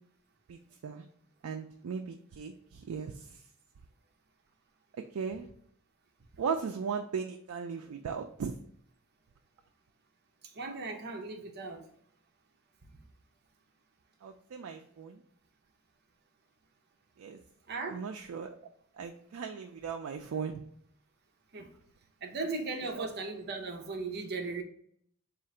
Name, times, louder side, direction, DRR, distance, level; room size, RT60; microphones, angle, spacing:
voice 1, 0.5-1.0 1.4-3.4 5.1-5.5 6.4-8.5 14.2-15.2 17.2-17.4 17.9-18.6 19.0-20.6 22.9-23.1, right 6 dB, 90° right, 4 dB, 0.4 m, -37 dB
voice 2, 10.5-11.9 17.7-18.0 21.5-21.7 22.2-24.6, right 3 dB, 50° right, 3 dB, 0.6 m, -37 dB
3.7 x 2.5 x 4.3 m, 0.65 s
head